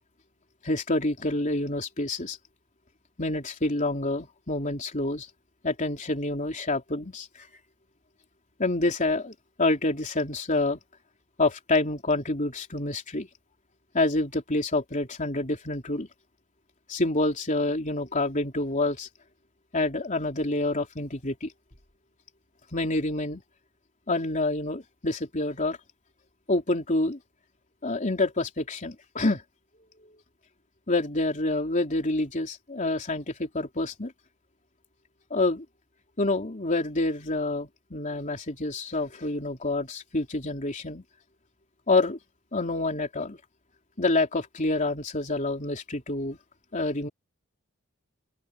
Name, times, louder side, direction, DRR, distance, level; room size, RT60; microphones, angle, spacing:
voice 1, 0.6-2.4 3.2-5.3 5.6-7.5 8.6-10.8 11.4-13.3 13.9-16.1 16.9-19.1 19.7-21.5 22.7-23.4 24.1-25.8 26.5-27.2 27.8-29.4 30.9-34.1 35.3-35.6 36.2-41.0 41.9-42.2 42.5-43.4 44.0-46.4 46.7-47.1, left 2 dB, 35° left, 3.7 m, -27 dB
open air
head